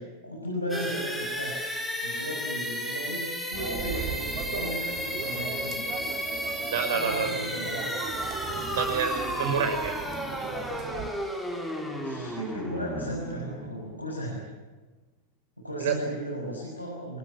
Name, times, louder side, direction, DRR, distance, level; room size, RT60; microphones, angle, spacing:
voice 1, 0.0-1.5 2.0-5.9 6.9-8.5 11.8-14.4 15.6-17.2, equal, 90° left, -3 dB, 6.6 m, -35 dB
sound 1, 0.7-14.4, equal, 5° left, 5.8 m, -33 dB
sound 2, 3.5-11.1, right 7 dB, 35° right, 3.6 m, -38 dB
voice 2, 6.7-7.3 8.7-10.0 15.8-15.9, right 7 dB, 60° right, 6 dB, 6.1 m, -28 dB
25.0 x 24.0 x 8.9 m, 1.3 s
figure-of-eight pair, 90°, 0 cm